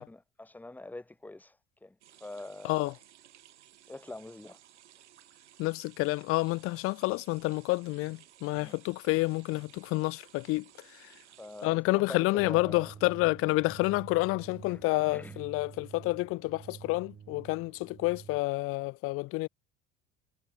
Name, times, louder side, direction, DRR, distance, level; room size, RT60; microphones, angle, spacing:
voice 1, 0.0-1.6 1.8-2.0 2.2-2.9 3.9-4.6 8.6-8.8 11.4-13.2 14.7-14.8 15.1-15.4, left 2 dB, 5° left, 0.8 m, -44 dB
sound 1, 2.0-11.7, right 12 dB, 70° right, 3.7 m, -58 dB
voice 2, 5.6-10.6 11.6-19.5, left 22 dB, 40° left, 0.5 m, -29 dB
sound 2, 12.4-18.4, right 7 dB, 30° right, 1.9 m, -49 dB
figure-of-eight pair, 60°, 35 cm